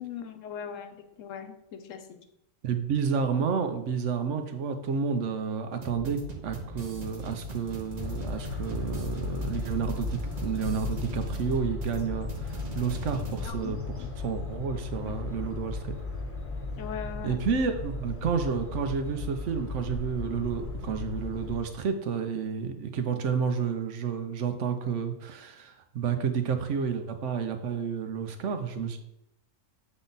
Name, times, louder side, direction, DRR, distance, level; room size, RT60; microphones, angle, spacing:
voice 1, 0.0-2.2 13.4-14.4 15.0-15.1 16.8-17.4, left 7 dB, 85° left, 7 dB, 1.1 m, -40 dB
voice 2, 2.6-16.0 17.2-29.0, right 6 dB, 70° right, 7 dB, 1.0 m, -30 dB
sound 1, 5.8-13.5, right 2 dB, 35° right, 0.8 m, -41 dB
sound 2, 8.0-21.6, left 4 dB, 10° left, 1.0 m, -36 dB
7.2 x 3.8 x 3.9 m, 0.82 s
omnidirectional pair, 1.3 m